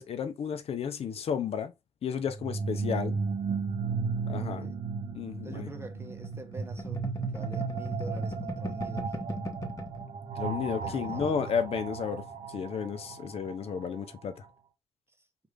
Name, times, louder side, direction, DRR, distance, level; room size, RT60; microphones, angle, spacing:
voice 1, 0.0-1.7 2.0-3.2 4.3-4.7 5.1-5.7 10.4-12.2 12.5-14.3, left 7 dB, 60° left, 0.5 m, -32 dB
sound 1, 2.3-14.1, right 5 dB, 55° right, 0.7 m, -35 dB
voice 2, 4.3-4.8 5.4-9.3 10.8-11.5 15.1-15.2, right 2 dB, 20° right, 0.9 m, -46 dB
sound 2, 5.5-10.1 10.4-10.5 10.8-11.4, equal, 30° left, 1.0 m, -40 dB
3.2 x 2.5 x 3.2 m
cardioid pair, 65°, 11 cm